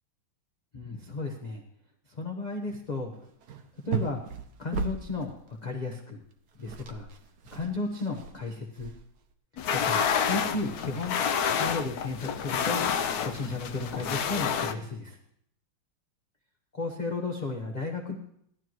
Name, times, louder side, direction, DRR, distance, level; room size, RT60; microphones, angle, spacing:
voice 1, 0.7-1.6 2.1-3.1 3.8-4.2 4.6-6.2 6.6-7.1 7.5-8.9 9.7-11.2 11.6-12.8 13.2-15.2 16.8-18.2, left 3 dB, 30° left, 0 dB, 0.8 m, -34 dB
sound 1, 2.7-2.9 3.1-5.5 6.3-6.4 6.5-9.3, right 5 dB, 60° right, 1.2 m, -37 dB
sound 2, 9.6-14.7, left 7 dB, 75° left, 0.8 m, -29 dB
16.5 x 12.0 x 3.1 m, 0.69 s
omnidirectional pair, 2.4 m